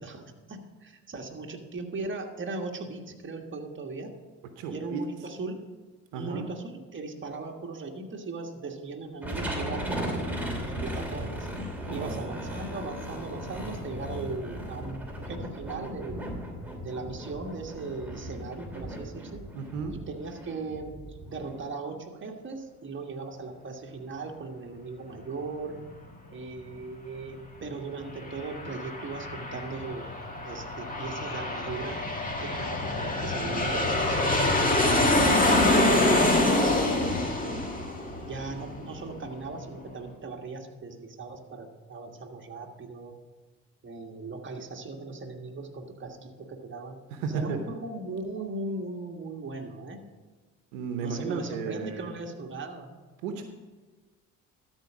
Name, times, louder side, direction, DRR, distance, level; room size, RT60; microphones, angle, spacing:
voice 1, 0.0-4.1 4.7-5.6 6.1-11.5 11.9-16.2 16.8-19.4 19.9-25.8 26.3-30.1 30.4-32.0 32.4-37.6 38.3-43.1 43.8-47.0 47.3-50.0 51.0-52.9, right 3 dB, 30° right, 2 dB, 1.6 m, -38 dB
voice 2, 4.6-5.0 6.1-6.5 11.9-12.2 19.5-20.0 33.4-34.0 47.1-47.6 50.7-52.1 53.2-53.4, right 5 dB, 90° right, 6 dB, 0.9 m, -34 dB
sound 1, 9.2-21.6, equal, 5° right, 2.8 m, -37 dB
Aircraft, 28.0-39.2, left 2 dB, 20° left, 2.1 m, -26 dB
12.5 x 4.6 x 6.2 m, 1.3 s
supercardioid pair, 60°, 37 cm